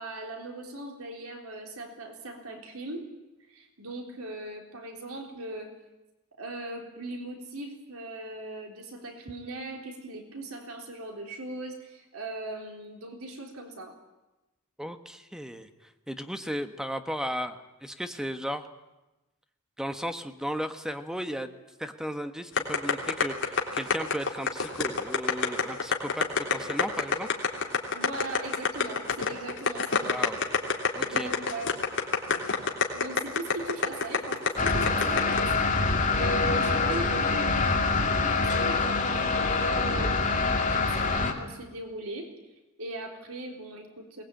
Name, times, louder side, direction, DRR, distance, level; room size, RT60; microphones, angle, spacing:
voice 1, 0.0-3.0 3.5-5.7 6.4-14.0 27.9-30.1 31.0-31.8 32.9-35.7 36.2-42.3 42.8-44.2, right 2 dB, 80° right, 3 dB, 3.7 m, -39 dB
voice 2, 14.8-15.7 16.1-18.7 19.8-21.5 21.8-27.3 30.0-30.4 30.9-31.3, equal, 5° right, 8 dB, 1.2 m, -35 dB
sound 1, 22.6-35.4, left 5 dB, 60° left, 3.3 m, -26 dB
sound 2, 34.6-41.3, left 3 dB, 35° left, 2.7 m, -25 dB
22.0 x 19.5 x 9.0 m, 1.0 s
head